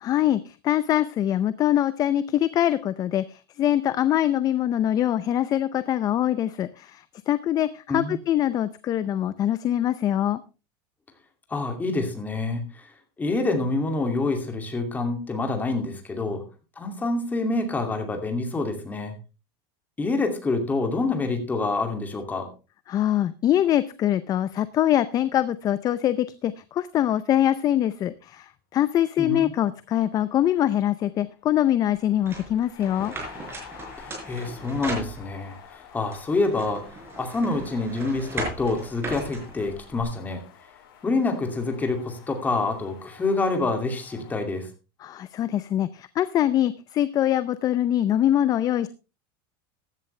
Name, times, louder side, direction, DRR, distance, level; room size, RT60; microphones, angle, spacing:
voice 1, 0.0-10.4 22.9-33.1 45.0-48.9, left 11 dB, 30° left, 15 dB, 0.6 m, -23 dB
voice 2, 11.5-12.9 13.2-16.4 16.8-19.2 20.0-22.5 29.2-29.5 34.0-36.8 37.2-40.4 41.0-44.7, left 3 dB, 15° left, 5 dB, 2.5 m, -27 dB
sound 1, 30.1-44.4, left 10 dB, 75° left, 4.6 m, -49 dB
sound 2, 32.3-35.6 36.1-40.0, right 2 dB, 20° right, 5.0 m, -37 dB
15.0 x 11.0 x 3.3 m, 0.31 s
supercardioid pair, 150°, 12 cm